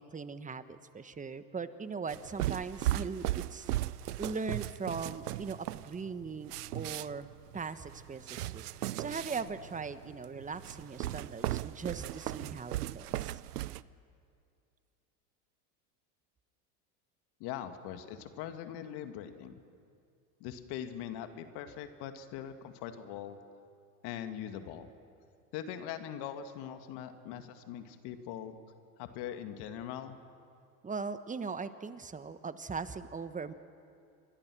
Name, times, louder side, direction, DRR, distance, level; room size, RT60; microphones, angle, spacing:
voice 1, 0.0-3.7 4.2-13.4 30.8-33.5, right 5 dB, 15° right, 11 dB, 1.3 m, -40 dB
sound 1, 2.1-13.8, right 15 dB, 90° right, 0.7 m, -37 dB
voice 2, 17.4-19.6 20.4-23.4 24.0-24.9 25.5-28.6 29.0-30.2, left 10 dB, 60° left, 7 dB, 2.1 m, -41 dB
28.5 x 23.0 x 6.2 m, 2.4 s
hypercardioid pair, 85°, 45 cm